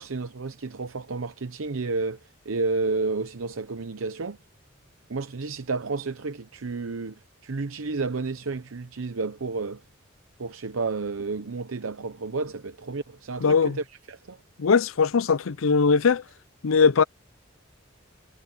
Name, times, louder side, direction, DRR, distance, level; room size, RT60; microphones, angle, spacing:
voice 1, 0.0-4.4 5.1-9.8 10.4-14.4, right 3 dB, 85° right, 0.8 m, -31 dB
voice 2, 13.4-13.8 14.6-16.2 16.6-17.0, left 5 dB, 85° left, 0.6 m, -20 dB
head